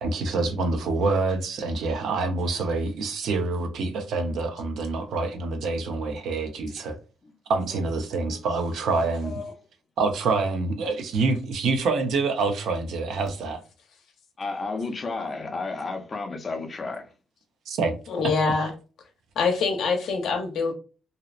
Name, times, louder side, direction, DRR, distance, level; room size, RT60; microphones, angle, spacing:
voice 1, 0.0-7.0 7.5-9.3 10.0-13.6 17.7-17.9 18.6-18.7, right 3 dB, 75° right, 0.6 m, -26 dB
voice 2, 9.1-9.5 14.4-17.1, left 3 dB, 35° left, 0.6 m, -32 dB
voice 3, 18.1-18.7 19.4-20.7, left 4 dB, 70° left, 0.7 m, -24 dB
2.7 x 2.0 x 2.4 m
cardioid pair, 90°, 0 cm